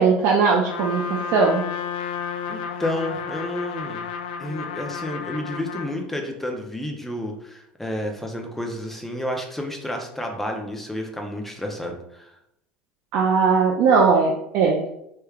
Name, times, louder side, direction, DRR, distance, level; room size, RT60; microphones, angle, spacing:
voice 1, 0.0-1.6 13.1-14.8, right 5 dB, 60° right, -1 dB, 0.5 m, -19 dB
Trumpet, 0.7-6.0, left 6 dB, 80° left, 0.3 m, -32 dB
voice 2, 2.5-4.0 4.4-12.3, left 1 dB, 5° left, 2 dB, 0.7 m, -30 dB
3.3 x 3.1 x 2.4 m, 0.80 s
hypercardioid pair, 90°, 5 cm